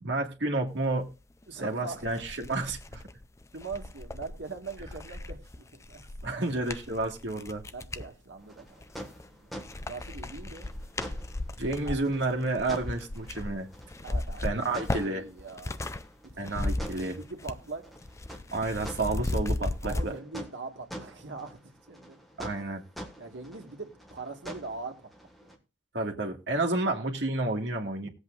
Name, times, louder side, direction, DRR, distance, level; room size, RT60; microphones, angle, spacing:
voice 1, 0.0-1.2 1.5-3.0 6.2-7.6 11.6-13.7 14.4-15.2 16.4-17.1 18.5-20.1 22.4-22.8 25.9-28.1, right 2 dB, 70° right, 2.0 m, -30 dB
sound 1, 1.4-1.5 1.9-8.1 8.7-9.3 9.6-16.0 16.3-17.7 18.0-20.1, left 2 dB, 15° left, 0.4 m, -36 dB
voice 2, 1.5-2.3 3.5-6.5 7.7-9.5 9.9-10.7 11.8-12.0 14.0-15.9 16.2-16.5 16.9-17.9 19.8-22.4 23.2-25.1 25.4-25.5 28.0-28.1, right 3 dB, 85° right, 1.9 m, -42 dB
sound 2, 8.4-25.6, equal, ahead, 1.6 m, -47 dB
19.5 x 8.0 x 2.5 m
head